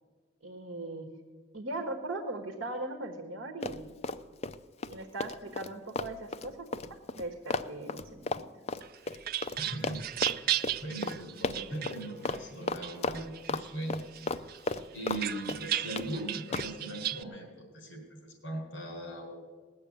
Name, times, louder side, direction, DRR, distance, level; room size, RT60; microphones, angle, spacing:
voice 1, 0.4-1.1 1.5-3.9 4.9-8.4, right 2 dB, 70° right, 3 dB, 1.3 m, -39 dB
Run, 3.6-4.6 4.8-9.6 9.8-10.4 10.6-10.8 11.0-11.2 11.4-12.0 12.3-12.4 12.7-13.6 13.9-15.2 15.5-16.1 16.5-16.7, left 3 dB, 30° left, 0.4 m, -34 dB
sound 1, 8.8-12.4 12.8-13.7 14.1-17.2, right 12 dB, 50° right, 0.4 m, -35 dB
voice 2, 9.6-14.0 14.9-19.3, right 1 dB, 60° left, 2 dB, 4.4 m, -39 dB
19.0 x 6.7 x 8.5 m, 1.5 s
head